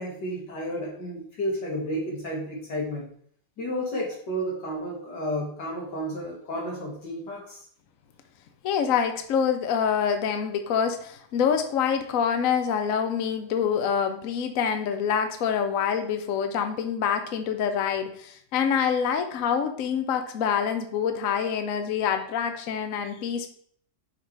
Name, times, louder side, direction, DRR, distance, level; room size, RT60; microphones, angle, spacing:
voice 1, 0.0-3.1 3.6-7.6, equal, 80° left, -3 dB, 2.8 m, -32 dB
voice 2, 8.6-23.5, left 7 dB, 65° left, 8 dB, 1.0 m, -26 dB
5.4 x 5.0 x 4.7 m, 0.62 s
omnidirectional pair, 1.8 m